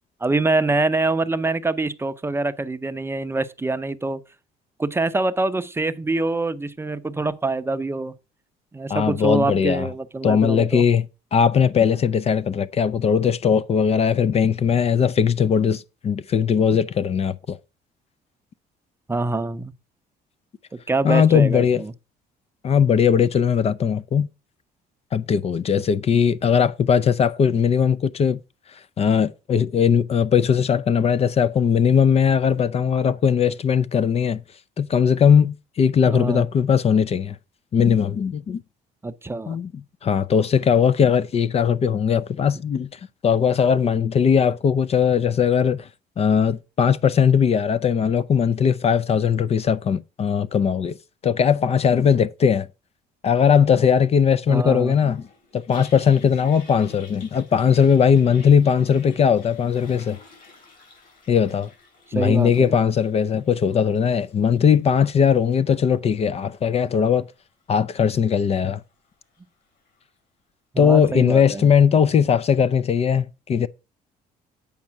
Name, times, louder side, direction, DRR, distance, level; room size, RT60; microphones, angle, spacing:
voice 1, 0.2-4.2 4.8-8.1 8.7-10.8 19.1-19.7 20.9-21.9 36.1-36.5 39.0-39.6 54.5-55.0 62.1-62.7 70.7-71.7, right 2 dB, 15° right, 0.6 m, -25 dB
voice 2, 8.9-9.9 10.2-11.0 11.3-17.6 21.0-21.8 22.6-24.3 25.1-28.4 28.7-34.4 34.8-37.4 37.7-38.6 39.5-45.9 46.2-51.0 51.2-52.7 53.2-55.2 55.5-60.2 61.3-61.7 62.1-67.3 67.7-68.8 70.8-73.7, left 7 dB, 35° left, 0.4 m, -19 dB
Toilet flush, 54.9-70.1, left 4 dB, 55° left, 6.0 m, -52 dB
8.6 x 5.3 x 5.7 m
cardioid pair, 110°, 17 cm